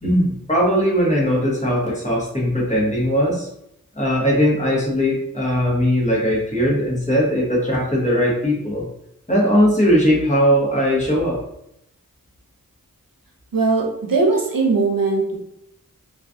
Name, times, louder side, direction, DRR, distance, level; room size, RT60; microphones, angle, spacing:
voice 1, 0.0-3.5 4.0-8.8 9.3-11.4, equal, 20° left, -5 dB, 1.0 m, -19 dB
voice 2, 13.5-15.4, right 3 dB, 70° right, 0 dB, 0.7 m, -19 dB
2.3 x 2.3 x 2.5 m, 0.77 s
wide cardioid pair, 40°, 35 cm